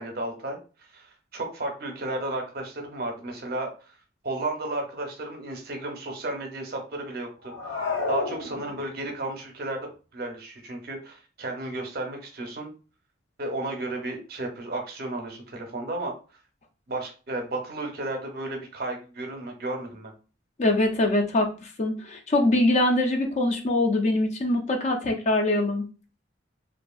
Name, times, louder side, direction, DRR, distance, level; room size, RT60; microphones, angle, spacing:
voice 1, 0.0-4.0 4.2-7.8 8.1-12.7 13.4-16.1 16.9-20.1, right 2 dB, 50° right, 3 dB, 0.6 m, -33 dB
sound 1, 7.4-9.1, left 3 dB, 70° left, 0.7 m, -30 dB
voice 2, 20.6-25.8, left 1 dB, 35° left, 3 dB, 0.4 m, -23 dB
2.7 x 2.4 x 2.3 m, 0.35 s
head